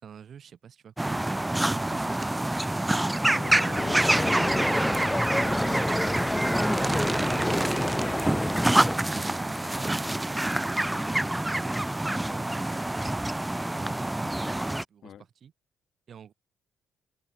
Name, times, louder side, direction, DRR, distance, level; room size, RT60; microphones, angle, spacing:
voice 1, 0.0-2.4 6.6-8.0 8.7-10.8 11.0-11.8 12.3-13.2 13.8-14.3 14.7-15.5 16.1-16.3, right 8 dB, 60° right, 6.2 m, -48 dB
sound 1, 1.0-14.8, right 1 dB, 10° right, 2.1 m, -27 dB
voice 2, 3.2-5.8 15.0-15.2, left 9 dB, 65° left, 2.8 m, -43 dB
sound 2, 3.8-9.0, left 1 dB, 15° left, 0.4 m, -29 dB
open air
hypercardioid pair, 50°, 0 cm